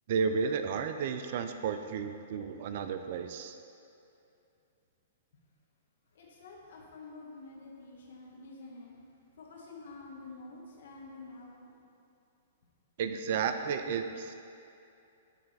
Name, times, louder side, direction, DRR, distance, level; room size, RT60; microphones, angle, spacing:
voice 1, 0.1-3.6 13.0-14.3, right 6 dB, 50° right, 8 dB, 0.4 m, -32 dB
voice 2, 6.1-9.1 9.3-11.8, left 3 dB, 60° left, -2 dB, 1.1 m, -49 dB
7.6 x 3.3 x 4.1 m, 2.6 s
figure-of-eight pair, 110°, 0 cm